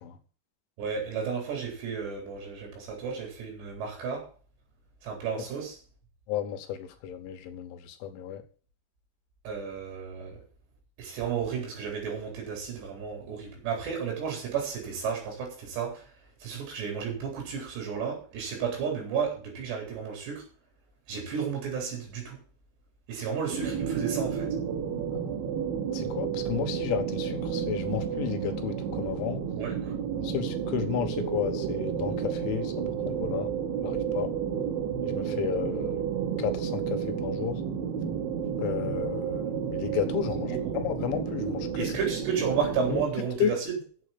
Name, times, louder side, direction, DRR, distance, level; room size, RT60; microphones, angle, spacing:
voice 1, 0.8-4.3 5.0-5.8 9.4-10.4 11.0-16.1 16.4-20.4 21.1-22.4 23.1-24.6 29.5-29.9 40.5-40.8 41.8-43.8, right 6 dB, 65° right, 1 dB, 6.1 m, -32 dB
voice 2, 6.3-8.4 25.1-25.4 25.9-29.4 30.2-32.7 33.1-33.5 33.8-34.3 35.1-36.0 36.4-37.6 38.6-42.0 42.9-43.0 43.4-43.5, left 9 dB, 80° left, 7 dB, 3.6 m, -32 dB
sound 1, 23.5-43.1, right 7 dB, 80° right, 4.2 m, -31 dB
8.6 x 7.7 x 8.5 m, 0.39 s
omnidirectional pair, 5.6 m